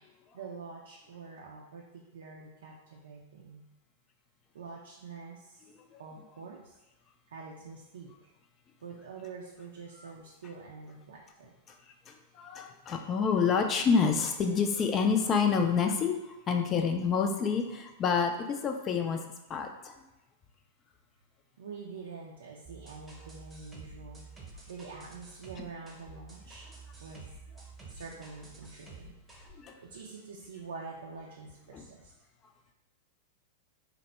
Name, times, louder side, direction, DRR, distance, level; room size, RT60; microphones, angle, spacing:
voice 1, 0.3-3.6 4.5-5.6 6.0-6.7 7.3-8.3 8.8-11.5 21.6-24.3 24.5-26.7 27.0-27.4 27.9-29.1 29.8-32.1, right 4 dB, 65° right, -2 dB, 0.4 m, -46 dB
voice 2, 12.1-19.2 19.5-20.0 25.6-25.7 29.5-29.8 31.7-31.9, left 6 dB, 30° left, 4 dB, 0.4 m, -28 dB
sound 1, 22.6-29.5, right 4 dB, 5° right, 0.9 m, -50 dB
4.1 x 2.1 x 3.2 m, 0.99 s
figure-of-eight pair, 95°, 0 cm